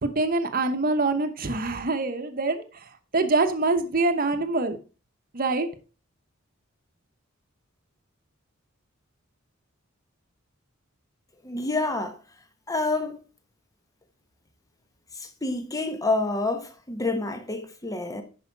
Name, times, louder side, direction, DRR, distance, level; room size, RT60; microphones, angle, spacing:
voice 1, 0.0-4.8 5.3-5.7, right 3 dB, 45° right, 1.0 m, -25 dB
voice 2, 11.4-12.2 12.7-13.2 15.1-18.2, left 2 dB, 15° left, 1.1 m, -28 dB
9.9 x 5.5 x 4.6 m
head